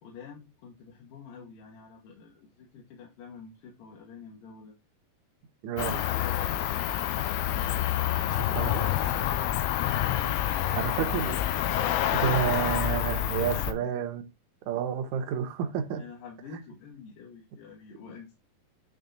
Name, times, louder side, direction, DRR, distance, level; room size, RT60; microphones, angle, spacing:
voice 1, 0.0-4.8 5.7-6.9 8.0-9.6 10.1-10.8 13.5-13.9 15.9-18.3, left 5 dB, 65° left, 2.8 m, -47 dB
voice 2, 5.6-6.0 8.5-8.9 10.8-11.4 12.1-14.2 14.7-16.0, right 8 dB, 65° right, 2.0 m, -30 dB
Cricket, 5.8-13.7, left 12 dB, 85° left, 2.6 m, -28 dB
9.2 x 3.6 x 3.9 m
omnidirectional pair, 4.5 m